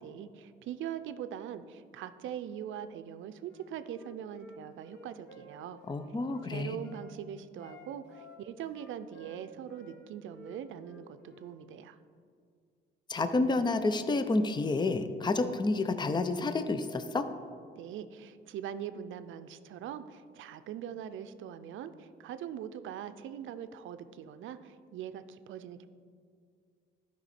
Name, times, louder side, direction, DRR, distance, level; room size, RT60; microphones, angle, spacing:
voice 1, 0.0-5.8 6.4-12.0 17.8-25.9, right 9 dB, 80° right, 11 dB, 0.5 m, -42 dB
Wind instrument woodwind instrument, 3.4-7.1 7.5-10.0 10.3-11.6, left 1 dB, 60° left, 1.6 m, -54 dB
voice 2, 5.9-6.8 13.1-17.3, left 3 dB, 20° left, 10 dB, 0.6 m, -29 dB
12.0 x 5.4 x 4.3 m, 2.2 s
cardioid pair, 90°, 20 cm